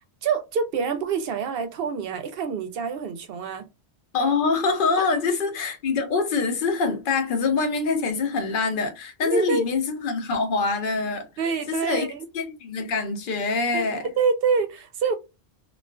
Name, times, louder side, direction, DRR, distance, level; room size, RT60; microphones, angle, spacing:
voice 1, 0.2-3.6 5.0-5.1 9.2-9.7 11.4-12.3 13.7-13.9 14.2-15.1, right 5 dB, 65° right, 0.7 m, -26 dB
voice 2, 4.1-11.3 11.7-14.0, left 4 dB, 55° left, 0.7 m, -25 dB
2.4 x 2.3 x 2.2 m
omnidirectional pair, 1.1 m